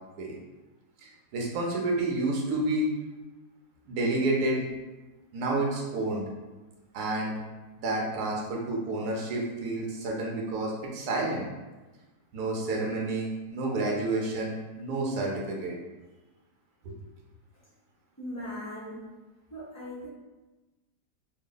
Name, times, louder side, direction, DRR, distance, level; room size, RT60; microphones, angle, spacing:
voice 1, 1.3-2.9 3.9-4.6 5.3-6.2 6.9-7.3 7.8-11.5 12.3-15.7 16.8-16.9, right 2 dB, 70° right, -2 dB, 1.1 m, -29 dB
voice 2, 18.2-19.0 19.5-20.1, equal, 25° left, -10 dB, 0.3 m, -39 dB
3.3 x 2.1 x 3.8 m, 1.2 s
omnidirectional pair, 1.8 m